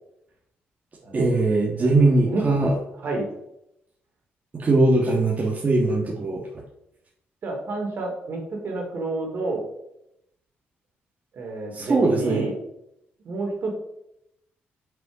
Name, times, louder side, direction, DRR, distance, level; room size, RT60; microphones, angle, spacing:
voice 1, 1.1-2.7 4.5-6.6 11.7-12.5, right 2 dB, 40° right, -2 dB, 1.4 m, -21 dB
voice 2, 2.2-2.6 3.0-3.3 7.4-9.6 11.3-12.5 13.2-13.7, right 2 dB, 60° right, 1 dB, 2.6 m, -29 dB
6.1 x 5.6 x 4.9 m, 0.81 s
cardioid pair, 80°, 4 cm